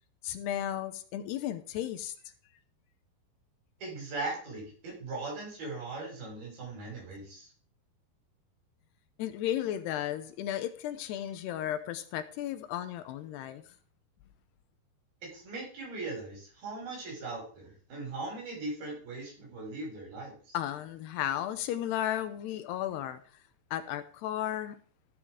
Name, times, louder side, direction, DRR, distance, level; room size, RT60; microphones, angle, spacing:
voice 1, 0.2-2.1 9.2-13.6 20.5-23.2 23.7-24.8, left 11 dB, 75° left, 2.7 m, -34 dB
voice 2, 3.8-7.5 15.2-20.6, right 3 dB, 55° right, 7.8 m, -39 dB
14.5 x 8.7 x 4.9 m
omnidirectional pair, 5.2 m